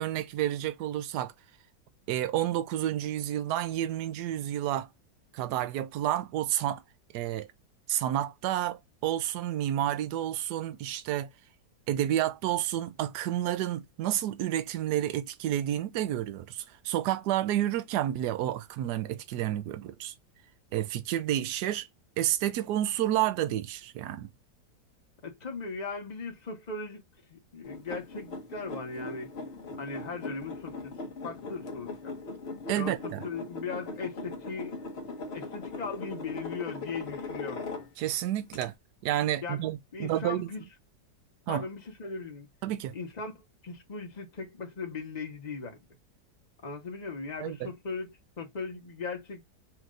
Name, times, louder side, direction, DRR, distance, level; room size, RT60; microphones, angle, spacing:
voice 1, 0.0-1.3 2.1-4.9 5.3-6.8 7.1-7.5 7.9-11.3 11.9-20.1 20.7-21.9 22.2-24.3 32.7-33.2 38.0-38.7 39.0-40.5 41.5-41.6 42.6-42.9 47.4-47.7, right 12 dB, 75° right, 1.2 m, -30 dB
voice 2, 25.2-27.0 27.3-29.3 29.8-30.9 31.2-32.2 32.7-32.9 33.2-34.7 35.3-37.7 39.4-39.6 39.9-40.6 41.5-42.5 42.9-43.3 43.6-45.8 46.6-49.4, left 4 dB, 30° left, 1.1 m, -38 dB
sound 1, 27.6-38.1 38.5-38.6, left 3 dB, 45° left, 1.0 m, -40 dB
4.4 x 2.6 x 3.8 m
omnidirectional pair, 1.9 m